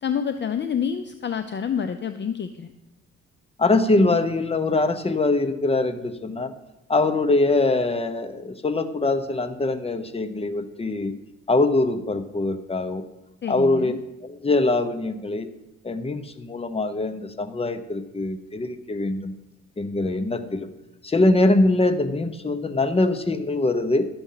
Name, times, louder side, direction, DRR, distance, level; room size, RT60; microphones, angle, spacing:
voice 1, 0.0-2.7 13.4-14.0, left 7 dB, 35° left, 9 dB, 0.6 m, -28 dB
voice 2, 3.6-6.5 6.9-11.1 11.5-13.0 13.5-13.9 14.2-15.5 15.8-19.3 19.8-20.7 21.0-24.0, left 2 dB, 20° left, 10 dB, 1.0 m, -23 dB
11.5 x 7.1 x 5.7 m, 0.92 s
cardioid pair, 90°, 30 cm